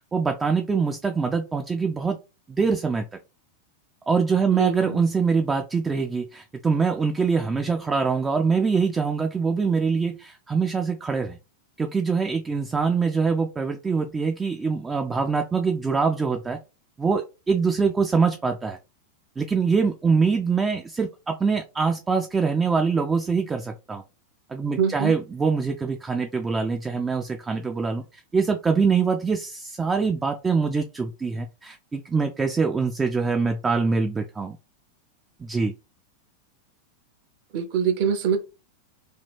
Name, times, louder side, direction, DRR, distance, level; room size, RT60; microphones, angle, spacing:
voice 1, 0.1-2.2 2.5-3.1 4.1-11.4 11.8-16.6 17.0-18.8 19.4-24.0 24.5-34.6 35.4-35.7, right 5 dB, 15° right, 0.3 m, -24 dB
voice 2, 4.5-5.0 24.8-25.2 37.5-38.4, right 7 dB, 45° right, 0.7 m, -24 dB
2.7 x 2.3 x 3.4 m
figure-of-eight pair, 90°, 0 cm